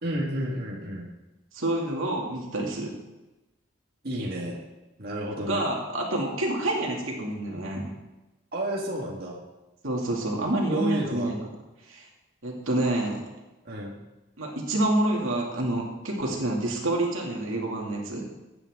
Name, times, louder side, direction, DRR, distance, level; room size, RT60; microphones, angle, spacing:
voice 1, 0.0-1.1 4.0-4.6 5.0-5.7 8.5-9.4 10.7-11.5 13.6-14.0, right 1 dB, 50° right, -3 dB, 1.8 m, -31 dB
voice 2, 1.5-2.9 5.5-7.9 9.8-11.3 11.9-12.1 12.4-13.2 14.4-18.3, right 1 dB, 85° right, -1 dB, 2.5 m, -28 dB
14.5 x 8.9 x 3.7 m, 1.1 s
head